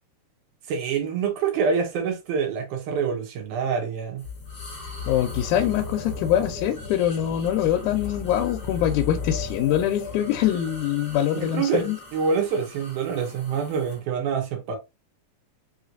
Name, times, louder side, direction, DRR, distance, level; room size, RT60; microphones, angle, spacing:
voice 1, 0.7-4.3 11.4-11.9 12.1-14.8, right 6 dB, 85° right, 2.6 m, -26 dB
sound 1, 4.2-14.0, left 4 dB, 30° left, 1.6 m, -36 dB
voice 2, 5.1-12.0, left 11 dB, 90° left, 2.1 m, -24 dB
5.3 x 3.2 x 2.5 m
omnidirectional pair, 3.5 m